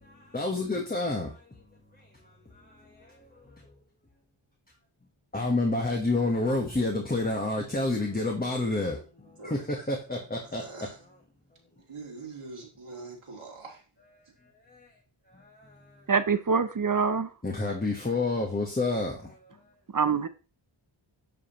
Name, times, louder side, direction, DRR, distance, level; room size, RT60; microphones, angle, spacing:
voice 1, 0.0-1.4 2.0-3.5 5.3-11.2 14.0-14.2 14.7-14.9 15.3-16.0 17.4-19.7, left 2 dB, 20° left, 1.2 m, -30 dB
voice 2, 11.9-13.8, right 3 dB, 80° right, 2.2 m, -43 dB
voice 3, 16.1-17.3 19.9-20.3, right 5 dB, 40° right, 0.6 m, -25 dB
10.5 x 5.0 x 3.0 m
wide cardioid pair, 85°, 49 cm